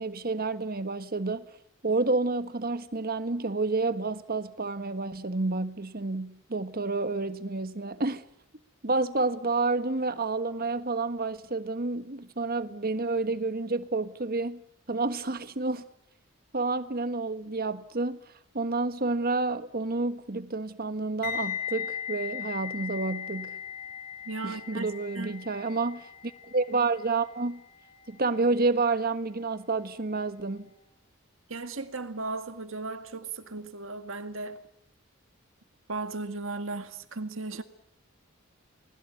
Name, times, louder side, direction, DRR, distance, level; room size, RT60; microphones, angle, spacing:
voice 1, 0.0-1.5 1.8-8.2 8.8-14.6 14.9-15.9 16.5-18.2 18.5-23.6 24.4-27.6 28.1-30.7, right 3 dB, 45° right, 1.4 m, -29 dB
sound 1, 21.2-30.2 30.4-30.7, left 9 dB, 45° left, 3.2 m, -39 dB
voice 2, 24.3-24.8 25.2-25.4 31.5-34.6 35.9-37.6, right 3 dB, 65° right, 2.0 m, -36 dB
30.0 x 21.0 x 8.4 m
head